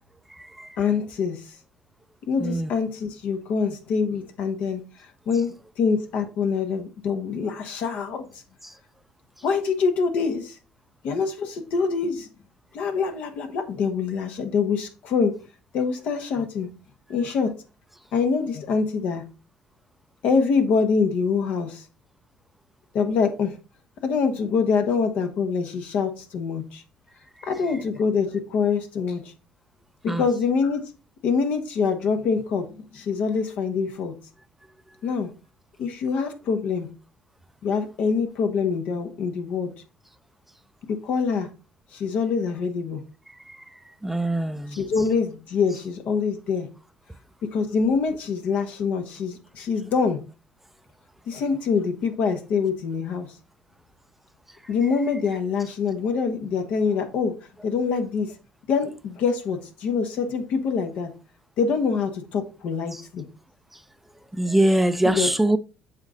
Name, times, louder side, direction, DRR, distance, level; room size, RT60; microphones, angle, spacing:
voice 1, 0.8-1.5 2.3-8.2 9.4-10.6 11.0-12.3 12.7-15.3 15.7-16.7 17.1-17.5 18.1-19.2 20.2-21.8 22.9-23.6 24.0-26.8 27.5-29.2 30.0-30.9 31.2-34.1 35.0-35.3 35.8-36.9 37.6-39.7 40.9-41.5 41.9-43.0 44.8-46.7 47.4-50.2 51.3-53.3 54.7-57.4 57.6-58.3 58.7-61.1 61.6-63.2 65.0-65.3, left 5 dB, 65° left, 1.2 m, -25 dB
voice 2, 44.0-44.8 64.4-65.6, right 1 dB, 5° right, 0.5 m, -22 dB
7.2 x 3.9 x 3.9 m
hypercardioid pair, 65°, 3 cm